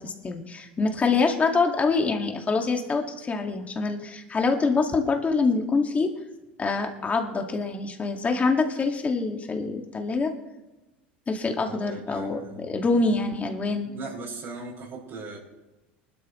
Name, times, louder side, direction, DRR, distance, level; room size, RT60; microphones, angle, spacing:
voice 1, 0.0-6.1 6.6-10.3 11.3-13.9, left 4 dB, 25° left, 3 dB, 2.2 m, -25 dB
voice 2, 11.7-12.9 13.8-15.4, right 3 dB, 50° right, -7 dB, 5.9 m, -39 dB
24.5 x 12.5 x 3.3 m, 1.0 s
hypercardioid pair, 80°, 6 cm